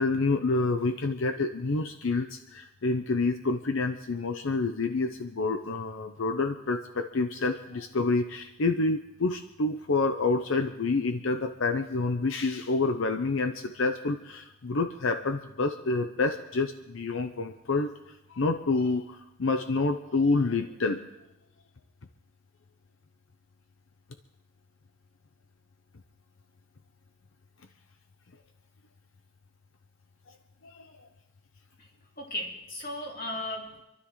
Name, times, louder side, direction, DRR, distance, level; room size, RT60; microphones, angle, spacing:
voice 1, 0.0-21.0 30.6-31.1, left 3 dB, 75° left, 7 dB, 0.7 m, -28 dB
voice 2, 32.2-33.8, left 1 dB, 45° left, -2 dB, 3.0 m, -36 dB
27.5 x 12.5 x 3.2 m, 0.94 s
head